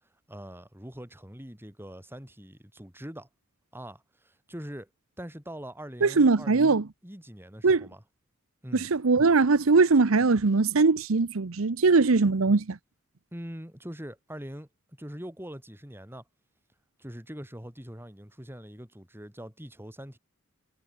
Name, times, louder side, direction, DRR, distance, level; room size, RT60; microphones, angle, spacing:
voice 1, 0.3-3.3 3.7-4.9 5.2-8.0 8.6-8.9 13.3-14.7 15.0-16.2 17.0-20.2, equal, 10° right, 5.4 m, -43 dB
voice 2, 6.0-6.8 7.6-7.9 8.7-12.8, right 4 dB, 75° right, 0.8 m, -21 dB
head